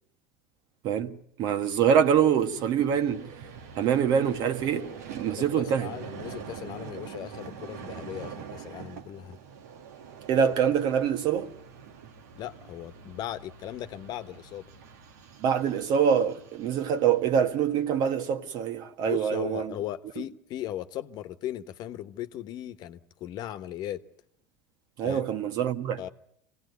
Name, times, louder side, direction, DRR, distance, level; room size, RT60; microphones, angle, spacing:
voice 1, 0.8-3.2 3.7-5.9 10.3-11.5 15.4-19.7 25.0-26.0, right 8 dB, 60° right, 1.6 m, -25 dB
Vehicle, 1.7-18.1, right 7 dB, 80° right, 1.7 m, -45 dB
voice 2, 5.7-9.4 12.3-14.7 19.1-24.0 25.0-25.2 26.0-26.1, left 12 dB, 55° left, 1.2 m, -37 dB
25.0 x 18.0 x 9.5 m
hypercardioid pair, 90°, 8 cm